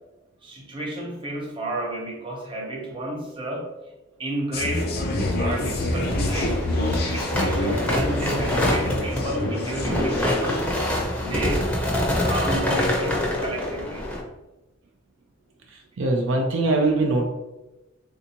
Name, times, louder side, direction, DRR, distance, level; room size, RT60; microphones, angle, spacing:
voice 1, 0.4-3.7 4.2-5.0 5.4-6.6 7.1-10.8 11.2-11.8 12.2-14.1, right 1 dB, 25° right, -2 dB, 0.8 m, -32 dB
sound 1, 4.5-11.1, left 1 dB, 50° left, 0.5 m, -27 dB
sound 2, 5.2-14.2, left 1 dB, 5° left, 0.5 m, -26 dB
voice 2, 16.0-17.3, right 2 dB, 70° right, 1 dB, 0.4 m, -21 dB
3.4 x 2.7 x 2.9 m, 1.0 s
head